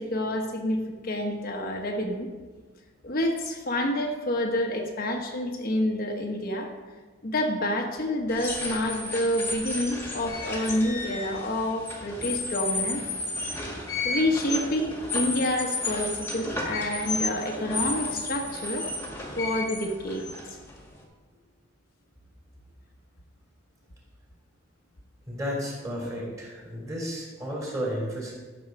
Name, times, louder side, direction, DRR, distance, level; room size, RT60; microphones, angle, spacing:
voice 1, 0.0-2.3 3.0-6.7 7.2-13.0 14.0-18.9 19.4-20.6, left 1 dB, 50° left, 1 dB, 1.1 m, -28 dB
sound 1, 8.3-21.0, left 2 dB, 10° left, 1.8 m, -33 dB
voice 2, 25.3-28.3, equal, 15° right, -3 dB, 3.2 m, -32 dB
12.5 x 6.7 x 5.2 m, 1.3 s
head